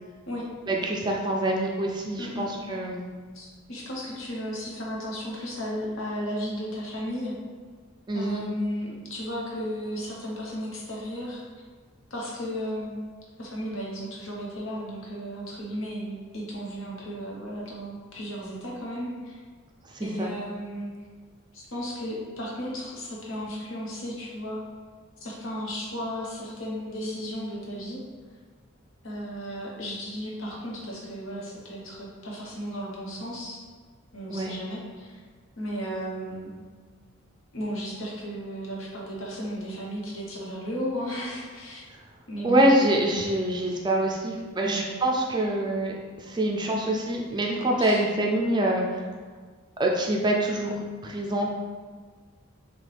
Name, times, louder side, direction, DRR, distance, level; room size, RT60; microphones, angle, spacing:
voice 1, 0.7-3.0 8.1-8.4 19.9-20.3 34.3-34.5 42.4-49.0 49.8-51.5, right 1 dB, 20° right, -1 dB, 0.4 m, -25 dB
voice 2, 2.2-2.5 3.3-7.4 8.1-11.4 12.1-12.9 13.4-19.4 20.0-20.9 21.5-24.6 25.2-28.0 29.0-33.6 34.1-35.2 35.6-36.5 37.5-41.8 42.3-42.9 44.6-44.8 47.7-48.0, equal, 65° left, -4 dB, 1.1 m, -34 dB
6.3 x 2.3 x 3.4 m, 1.5 s
head